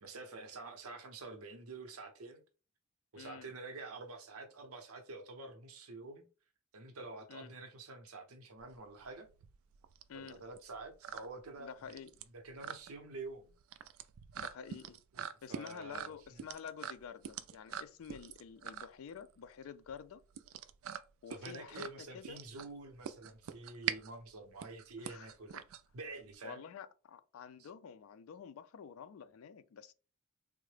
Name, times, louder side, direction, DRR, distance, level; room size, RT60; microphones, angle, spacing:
voice 1, 0.0-2.4 3.1-6.3 6.7-9.3 10.1-11.7 12.3-13.5 15.1-16.5 21.3-25.5 25.9-26.6 27.6-27.7, right 3 dB, 85° right, 0.7 m, -48 dB
voice 2, 3.2-3.5 7.3-7.5 10.1-10.4 11.6-12.1 14.4-15.0 15.4-20.2 21.2-22.4 25.0-25.6 26.4-29.9, left 7 dB, 70° left, 0.3 m, -49 dB
sound 1, 8.6-26.3, right 9 dB, 70° right, 0.3 m, -45 dB
3.6 x 2.1 x 3.2 m
head